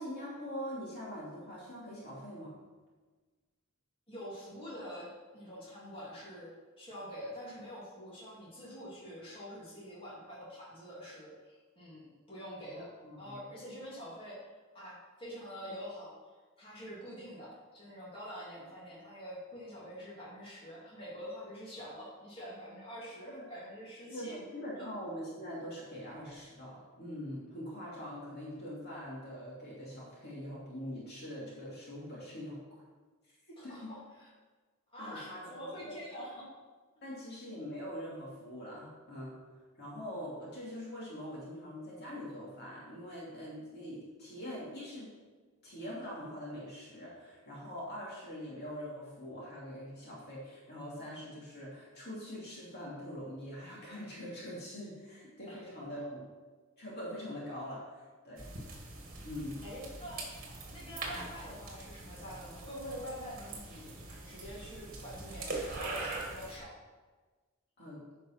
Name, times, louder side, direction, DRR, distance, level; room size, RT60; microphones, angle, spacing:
voice 1, 0.0-2.5 12.6-13.5 23.3-23.4 24.1-32.6 33.5-33.9 35.0-36.0 37.0-39.4 39.8-45.1 45.6-56.3 56.8-58.5 59.2-59.6 67.8-68.0, equal, 50° left, -6 dB, 2.8 m, -43 dB
voice 2, 4.1-12.9 13.2-14.4 14.7-16.1 16.6-24.4 24.8-24.9 33.6-34.3 34.9-36.5 36.9-37.1 55.5-55.6 59.6-60.2 60.7-66.7, equal, 25° left, -7 dB, 2.9 m, -46 dB
sound 1, 58.4-66.6, right 2 dB, 40° right, 1.9 m, -43 dB
9.7 x 5.3 x 5.9 m, 1.3 s
head